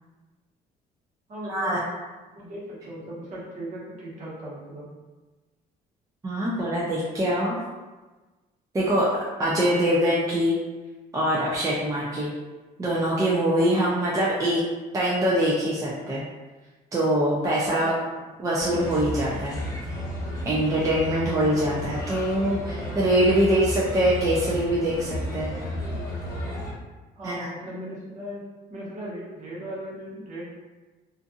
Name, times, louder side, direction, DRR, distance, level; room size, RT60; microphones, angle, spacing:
voice 1, 1.3-1.8 2.3-4.9 13.7-13.8 17.7-18.2 27.2-30.5, right 1 dB, 50° right, -7 dB, 1.1 m, -38 dB
voice 2, 6.2-7.6 8.7-9.1 9.4-10.6 11.1-12.3 12.8-14.6 14.9-16.2 16.9-17.9 18.4-19.6 20.5-25.5 27.2-27.5, right 1 dB, 20° right, -6 dB, 0.4 m, -23 dB
Bird, 18.6-26.7, left 1 dB, 15° left, 1.1 m, -33 dB
2.6 x 2.5 x 2.4 m, 1.2 s
cardioid pair, 110°, 17 cm